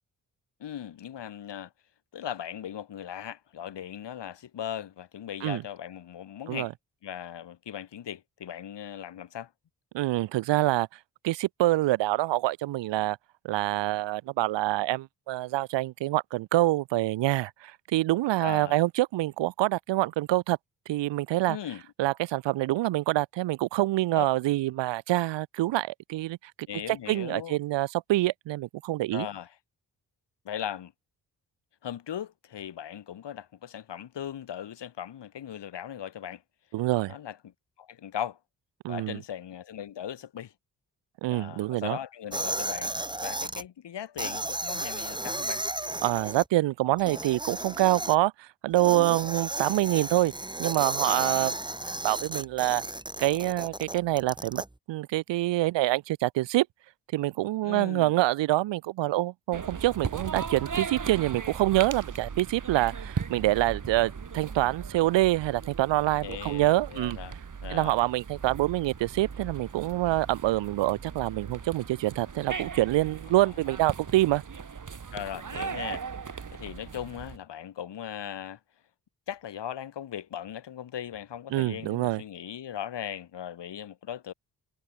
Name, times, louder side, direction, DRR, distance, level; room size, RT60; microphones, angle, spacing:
voice 1, 0.6-1.7 2.1-6.7 7.0-9.5 18.4-18.8 21.5-21.8 24.1-24.3 26.7-27.6 29.1-29.5 30.5-30.9 31.8-36.4 37.1-37.4 37.8-38.4 38.9-40.5 41.3-42.9 43.2-45.6 51.0-51.6 57.6-58.1 66.2-67.4 67.6-68.0 73.4-73.7 75.1-78.6 79.3-84.3, left 10 dB, 75° left, 7.0 m, -38 dB
voice 2, 9.9-10.9 11.2-13.2 13.4-20.6 20.9-21.6 22.0-26.4 26.9-29.3 36.7-37.1 38.8-39.2 41.2-42.0 46.0-50.3 50.6-51.5 52.0-52.8 53.2-54.6 54.9-56.7 57.1-67.2 67.7-74.4 81.5-82.2, right 17 dB, 85° right, 1.0 m, -26 dB
sound 1, 42.3-43.6 44.2-46.4 47.0-48.2 48.8-54.7, right 1 dB, 10° right, 1.8 m, -34 dB
sound 2, 59.5-77.4, right 6 dB, 45° right, 2.5 m, -38 dB
supercardioid pair, 45°, 42 cm